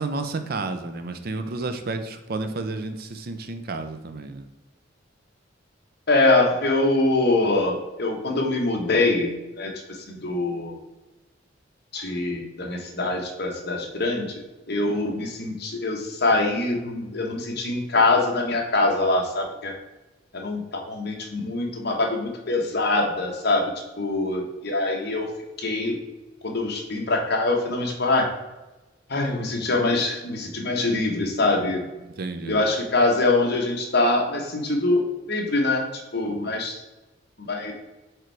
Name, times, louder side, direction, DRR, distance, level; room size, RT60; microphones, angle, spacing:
voice 1, 0.0-4.5 32.0-32.6, right 3 dB, 50° right, 8 dB, 0.5 m, -31 dB
voice 2, 6.1-10.8 11.9-19.7 20.3-25.3 25.6-26.0 26.4-28.3 29.1-31.8 32.5-35.8 36.1-36.8 37.5-37.7, left 2 dB, 55° left, 1 dB, 1.2 m, -24 dB
4.9 x 4.5 x 4.6 m, 1.0 s
head